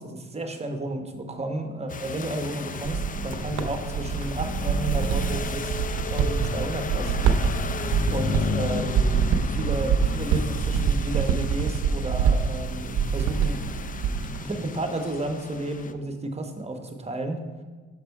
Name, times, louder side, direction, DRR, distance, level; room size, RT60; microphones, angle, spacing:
voice 1, 0.0-5.8 6.1-7.3 8.1-13.6 14.0-17.4, right 2 dB, 20° right, 6 dB, 1.0 m, -32 dB
sound 1, 1.9-15.9, left 5 dB, 30° left, 0.4 m, -34 dB
sound 2, 2.8-14.4, right 6 dB, 80° right, 0.6 m, -26 dB
6.6 x 5.4 x 4.6 m, 1.4 s
cardioid pair, 90°, 30 cm